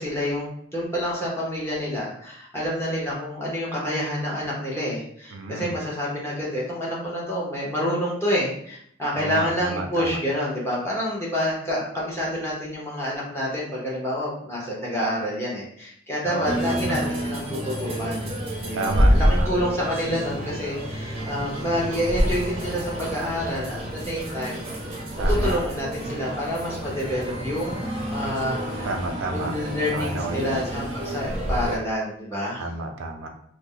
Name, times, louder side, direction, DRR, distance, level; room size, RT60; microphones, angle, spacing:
voice 1, 0.0-18.3 18.6-24.6 25.3-27.8 28.1-28.9 29.3-32.7, equal, 15° left, -6 dB, 0.9 m, -28 dB
voice 2, 5.3-5.7 9.2-10.2 16.2-17.0 18.7-19.5 25.2-25.6 28.8-29.5 29.9-30.5 32.6-33.3, right 2 dB, 85° right, 4 dB, 0.5 m, -30 dB
sound 1, 16.4-31.8, equal, 30° right, 0.6 m, -27 dB
2.7 x 2.1 x 3.7 m, 0.68 s
head